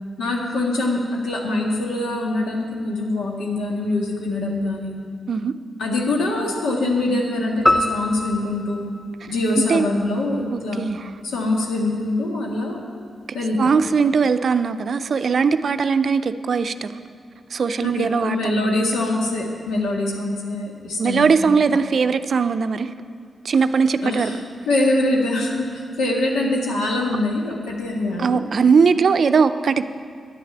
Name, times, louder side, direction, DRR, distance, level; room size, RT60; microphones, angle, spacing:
voice 1, 0.2-5.0 5.8-8.8 9.3-10.9 11.2-12.8 13.3-13.7 17.8-21.3 24.0-24.4 24.7-28.4, left 2 dB, 90° left, -1 dB, 1.8 m, -24 dB
sound 1, 7.7-10.1, left 1 dB, 10° left, 0.9 m, -24 dB
voice 2, 10.5-11.0 13.6-17.0 17.5-18.8 21.0-22.9 23.4-24.3 28.2-29.8, right 5 dB, 60° right, 11 dB, 0.5 m, -20 dB
10.5 x 6.5 x 8.9 m, 2.2 s
cardioid pair, 60°, 0 cm